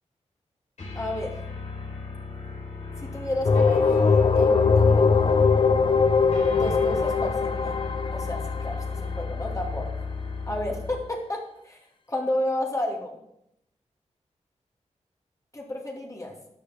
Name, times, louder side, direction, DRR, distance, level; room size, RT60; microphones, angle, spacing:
sound 1, 0.8-11.1, left 4 dB, 70° left, 4.2 m, -35 dB
voice 1, 0.9-1.4 3.0-5.1 6.5-7.8 8.1-9.9 10.5-11.8 12.1-13.2 15.5-16.4, left 1 dB, 25° left, -1 dB, 2.6 m, -32 dB
sound 2, 3.4-9.1, left 5 dB, 45° left, 0.6 m, -21 dB
13.0 x 9.6 x 3.8 m, 0.79 s
wide cardioid pair, 85°, 12 cm